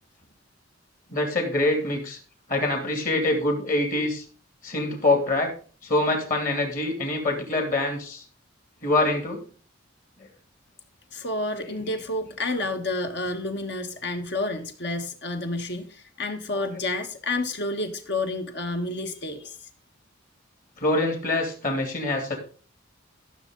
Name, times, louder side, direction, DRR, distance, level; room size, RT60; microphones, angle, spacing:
voice 1, 1.1-2.2 2.5-4.2 4.6-5.5 5.8-8.2 8.8-9.4 20.8-22.4, left 2 dB, 45° left, 3 dB, 2.8 m, -25 dB
voice 2, 11.1-19.6, left 2 dB, 60° left, 6 dB, 1.5 m, -30 dB
14.0 x 6.6 x 3.9 m, 0.40 s
head